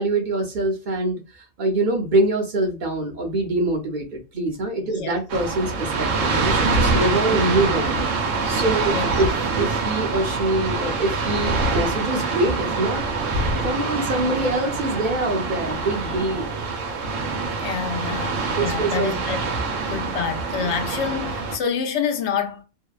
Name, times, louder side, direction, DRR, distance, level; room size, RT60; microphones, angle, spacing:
voice 1, 0.0-7.9 8.5-13.0 13.6-16.5 18.5-19.2 19.9-20.1 20.5-20.7, right 2 dB, 50° right, 0.7 m, -24 dB
sound 1, 5.3-21.6, right 3 dB, 85° right, 1.0 m, -25 dB
voice 2, 8.8-9.2 17.6-19.4 19.8-22.6, left 6 dB, 70° left, 0.8 m, -27 dB
2.7 x 2.1 x 2.2 m
omnidirectional pair, 1.3 m